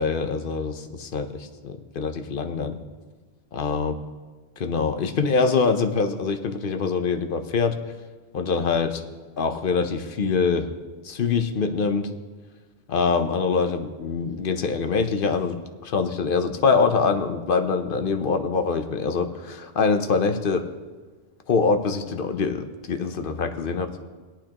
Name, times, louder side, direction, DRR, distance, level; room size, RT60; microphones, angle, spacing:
voice 1, 0.0-2.8 3.5-3.9 4.6-7.8 8.3-9.0 9.4-10.7 11.0-12.1 12.9-20.7 21.5-24.1, left 4 dB, 55° left, 8 dB, 0.8 m, -24 dB
18.0 x 8.8 x 2.9 m, 1.4 s
omnidirectional pair, 1.2 m